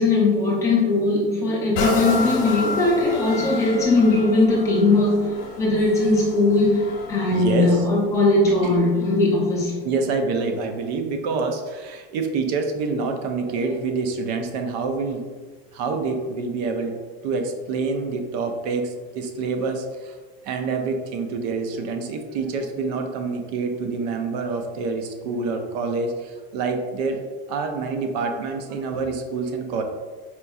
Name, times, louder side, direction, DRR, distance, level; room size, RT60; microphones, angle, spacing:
voice 1, 0.0-9.8, left 2 dB, 10° left, -5 dB, 0.6 m, -19 dB
sound 1, 1.7-9.4 9.9-10.0, left 2 dB, 65° left, 0.8 m, -31 dB
voice 2, 7.3-7.8 8.6-8.8 9.8-15.3 15.7-20.2 20.4-27.2 27.5-29.8, right 4 dB, 45° right, 5 dB, 0.4 m, -27 dB
4.4 x 2.6 x 2.3 m, 1.4 s
supercardioid pair, 175°, 29 cm